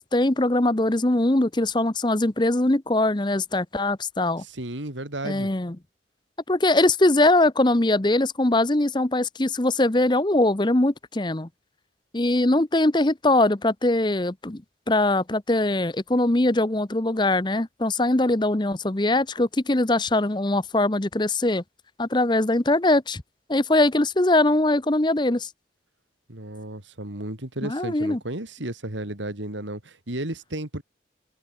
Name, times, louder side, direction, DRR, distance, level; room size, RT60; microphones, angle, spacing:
voice 1, 0.0-4.4 5.2-5.8 6.5-11.5 12.1-14.6 14.9-21.6 22.0-23.2 23.5-25.5 27.7-28.2, left 2 dB, 25° left, 0.9 m, -22 dB
voice 2, 4.4-5.5 26.3-30.8, right 1 dB, 80° right, 3.5 m, -33 dB
head